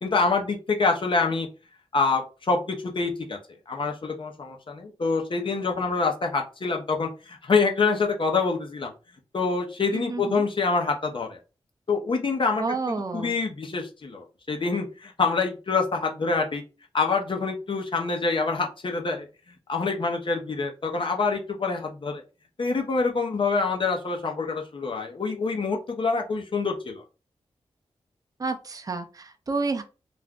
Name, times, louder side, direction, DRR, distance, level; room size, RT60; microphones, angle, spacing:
voice 1, 0.0-1.5 1.9-3.4 3.7-8.9 9.3-11.4 11.9-16.6 16.9-19.3 19.7-22.2 22.6-27.0, left 4 dB, 50° left, 3 dB, 0.8 m, -26 dB
voice 2, 9.9-10.4 12.6-13.3 28.4-29.8, right 3 dB, 35° right, 6 dB, 0.5 m, -30 dB
2.5 x 2.3 x 3.6 m, 0.31 s
cardioid pair, 50°, 11 cm